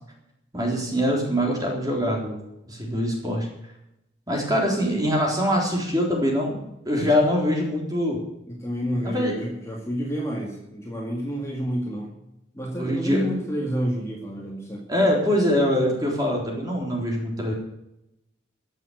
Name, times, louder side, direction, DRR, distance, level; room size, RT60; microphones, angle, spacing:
voice 1, 0.5-2.4 2.7-3.5 4.3-6.6 6.9-8.2 9.0-9.3 12.8-13.2 14.9-17.5, equal, 20° right, -1 dB, 3.9 m, -23 dB
voice 2, 8.5-12.2 12.5-14.8 17.5-17.6, equal, 15° left, -2 dB, 2.2 m, -29 dB
15.0 x 7.6 x 9.5 m, 0.84 s
head